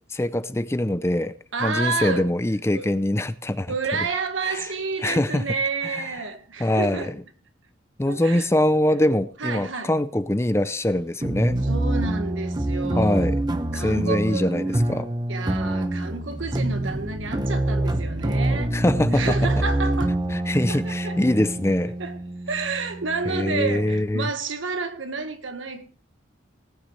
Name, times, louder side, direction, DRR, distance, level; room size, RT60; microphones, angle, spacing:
voice 1, 0.1-1.3 1.6-3.7 4.4-4.6 5.0-5.4 5.9-6.0 6.6-7.1 8.0-11.6 13.0-13.4 13.7-15.1 18.7-19.2 20.3-21.9 23.3-24.3, left 1 dB, 15° left, 0.5 m, -23 dB
voice 2, 1.5-2.3 2.7-2.9 3.7-7.1 8.1-8.5 9.4-9.9 11.6-13.3 13.7-14.6 15.3-18.7 19.1-20.2 20.6-21.2 22.0-22.2 22.5-25.8, right 4 dB, 85° right, 1.6 m, -30 dB
sound 1, 11.2-24.0, right 1 dB, 20° right, 0.9 m, -26 dB
18.5 x 9.3 x 3.2 m
head